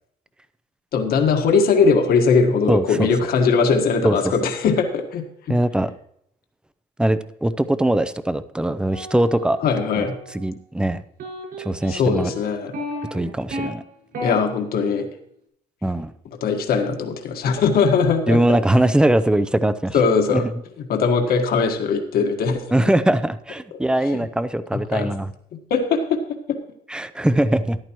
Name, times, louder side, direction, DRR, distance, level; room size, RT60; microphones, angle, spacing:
voice 1, 0.9-5.6 9.6-10.2 11.9-12.7 14.2-15.1 16.4-18.4 19.9-20.5 20.9-22.6 24.9-25.1 25.7-26.2 26.5-26.6, left 5 dB, 65° left, 4 dB, 1.6 m, -20 dB
voice 2, 2.7-3.1 4.0-4.2 5.5-5.9 7.0-9.6 10.0-10.1 10.3-11.0 11.6-12.3 13.1-13.8 15.8-16.1 18.3-20.0 20.3-20.5 22.7-25.3 26.9-27.8, right 1 dB, 5° right, 13 dB, 0.5 m, -21 dB
sound 1, 8.9-10.5 11.2-13.7 14.1-14.4, left 1 dB, 65° right, 5.6 m, -33 dB
13.5 x 11.0 x 3.0 m, 0.72 s
cardioid pair, 110°, 17 cm